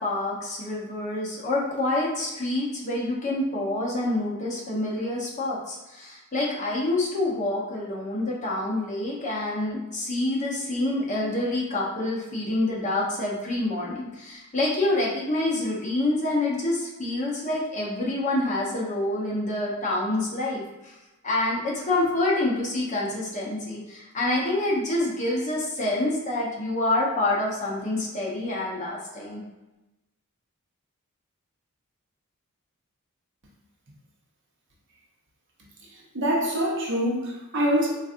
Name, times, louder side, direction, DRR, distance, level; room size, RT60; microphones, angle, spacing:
voice 1, 0.0-20.9 21.2-29.4, left 2 dB, 35° left, -5 dB, 0.8 m, -27 dB
voice 2, 36.1-37.9, equal, 55° right, -3 dB, 0.8 m, -24 dB
4.1 x 2.5 x 2.5 m, 1.0 s
head